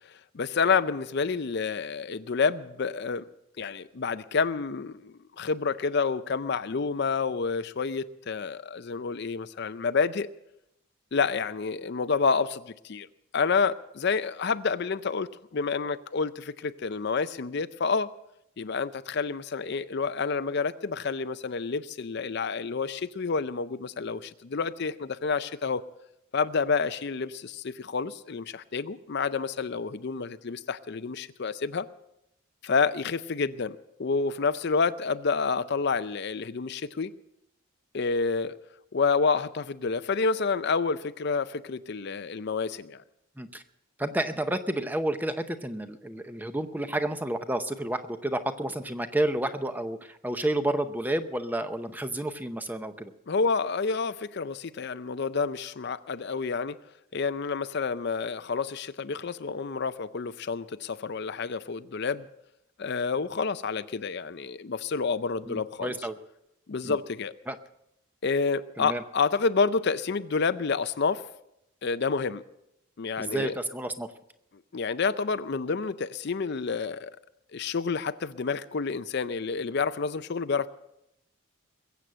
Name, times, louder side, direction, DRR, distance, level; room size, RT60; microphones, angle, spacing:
voice 1, 0.1-3.2 3.6-10.3 11.1-13.1 13.3-18.1 18.6-25.8 26.3-31.9 32.6-37.1 37.9-38.5 38.9-43.0 53.3-56.8 57.1-62.3 62.8-66.0 66.7-67.3 68.2-71.3 71.8-72.4 73.0-73.5 74.7-77.1 77.5-80.7, left 5 dB, 50° left, 13 dB, 0.5 m, -29 dB
voice 2, 44.0-53.1 65.5-66.2 66.8-67.0 67.5-67.6 68.8-69.0 73.2-74.1, right 1 dB, 10° right, 9 dB, 0.7 m, -30 dB
21.5 x 8.2 x 7.6 m, 0.82 s
head